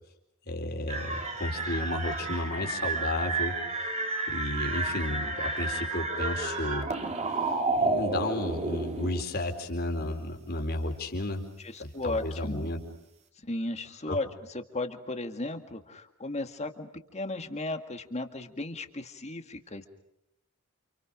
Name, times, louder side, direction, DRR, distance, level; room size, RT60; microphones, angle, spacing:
voice 1, 0.5-3.9 4.3-6.9 7.3-11.4 11.8-12.9 14.1-14.2, left 1 dB, 45° left, 4 dB, 4.2 m, -33 dB
sound 1, 0.9-9.2, right 3 dB, 30° right, 2.5 m, -31 dB
voice 2, 11.6-12.7 13.4-19.9, left 2 dB, 30° left, 7 dB, 2.0 m, -35 dB
30.0 x 28.0 x 5.1 m, 0.81 s
head